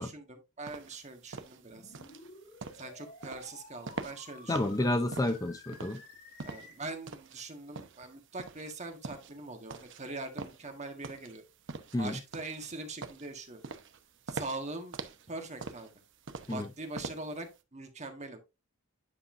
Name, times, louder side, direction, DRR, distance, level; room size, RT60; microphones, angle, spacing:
voice 1, 0.0-1.9 2.8-5.0 6.4-11.4 12.0-13.6 14.3-15.0 15.3-15.9 16.5-18.4, right 2 dB, 35° right, 1.5 m, -42 dB
sound 1, 0.7-17.6, right 4 dB, 60° right, 0.8 m, -44 dB
sound 2, 1.7-6.7, left 2 dB, 50° left, 2.3 m, -52 dB
voice 2, 4.5-6.0 11.9-12.2 16.5-16.7, left 1 dB, 15° left, 0.6 m, -30 dB
9.9 x 5.5 x 2.6 m
head